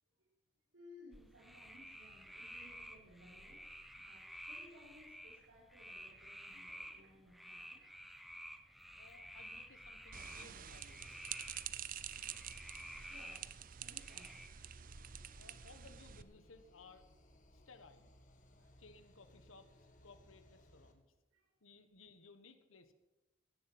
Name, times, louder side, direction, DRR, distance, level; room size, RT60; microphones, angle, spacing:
voice 1, 0.7-3.6 4.0-7.8 13.1-14.5 18.6-18.7 21.3-21.6, left 1 dB, 85° right, -8 dB, 4.8 m, -61 dB
sound 1, 1.1-14.5, equal, ahead, 0.9 m, -52 dB
voice 2, 8.9-11.3 15.3-17.1 17.5-18.1 18.8-21.0 21.6-22.9, left 3 dB, 90° left, 9 dB, 1.5 m, -60 dB
sound 2, 10.1-16.2, right 9 dB, 45° right, 0.6 m, -48 dB
sound 3, 14.6-20.9, left 1 dB, 40° left, 2.0 m, -64 dB
16.0 x 10.5 x 6.1 m, 1.0 s
head